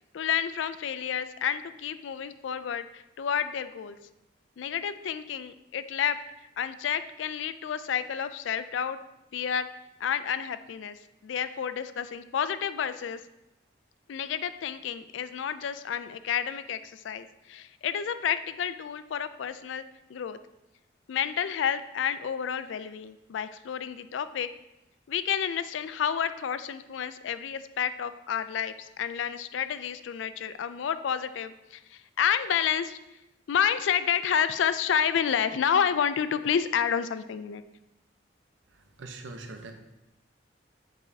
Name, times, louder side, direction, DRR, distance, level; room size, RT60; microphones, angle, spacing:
voice 1, 0.1-4.0 4.6-6.2 6.6-9.0 9.3-9.7 10.0-13.2 14.1-19.8 20.1-20.4 21.1-24.5 25.1-33.0 33.5-37.6, left 8 dB, 80° left, 12 dB, 0.3 m, -30 dB
voice 2, 38.7-39.7, right 3 dB, 80° right, 5 dB, 0.7 m, -42 dB
8.0 x 4.7 x 2.7 m, 0.95 s
head